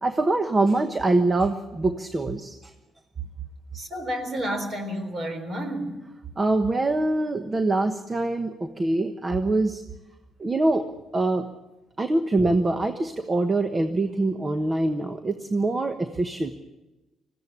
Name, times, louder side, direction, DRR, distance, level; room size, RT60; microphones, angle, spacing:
voice 1, 0.0-2.7 6.4-9.8 10.4-10.9 11.1-11.5 12.0-16.5, right 2 dB, 25° right, 8 dB, 1.1 m, -24 dB
voice 2, 3.7-6.0, equal, 45° right, 8 dB, 4.1 m, -30 dB
20.0 x 15.5 x 8.5 m, 1.1 s
cardioid pair, 90°, 0 cm